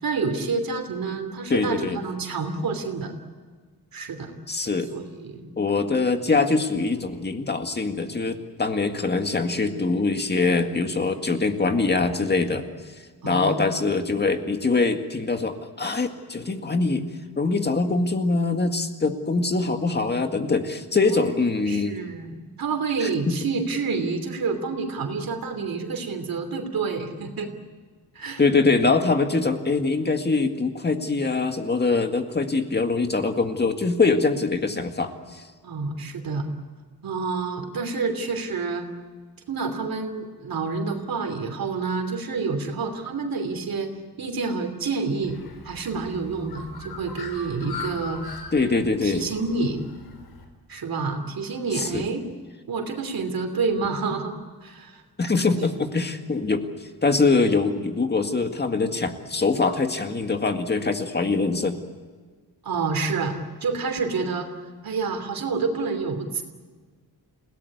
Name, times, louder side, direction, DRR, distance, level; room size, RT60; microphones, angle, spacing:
voice 1, 0.0-3.1 3.9-4.3 4.9-5.5 13.2-13.6 21.1-21.2 21.7-27.5 28.1-28.4 35.6-36.5 37.0-38.9 39.5-43.9 44.2-45.4 45.6-48.2 49.0-49.8 50.7-52.3 52.7-54.4 54.6-55.0 62.6-63.4 63.6-64.5 64.8-66.4, right 4 dB, 65° right, 5 dB, 3.0 m, -28 dB
voice 2, 1.5-2.0 4.5-4.9 5.6-12.6 13.2-17.0 17.4-22.0 23.0-23.1 28.4-35.4 48.5-49.3 51.8-52.0 55.2-56.7 57.0-61.8, left 3 dB, 25° left, 6 dB, 2.0 m, -23 dB
Bird, 45.2-50.4, left 4 dB, 80° left, 5.0 m, -40 dB
29.5 x 18.0 x 8.5 m, 1.5 s
wide cardioid pair, 180°, 37 cm